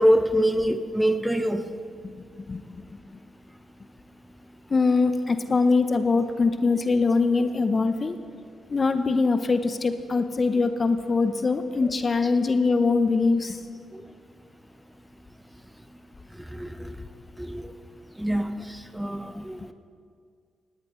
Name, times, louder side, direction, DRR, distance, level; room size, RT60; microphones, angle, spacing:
voice 1, 0.0-1.6 11.8-11.9 12.2-12.3 16.5-16.9 17.4-17.7 18.2-19.6, equal, 5° right, 9 dB, 1.0 m, -25 dB
voice 2, 2.0-3.0 4.7-8.2 8.7-13.6, left 4 dB, 40° left, 10 dB, 0.8 m, -23 dB
18.5 x 18.5 x 3.2 m, 2.2 s
hypercardioid pair, 40°, 0 cm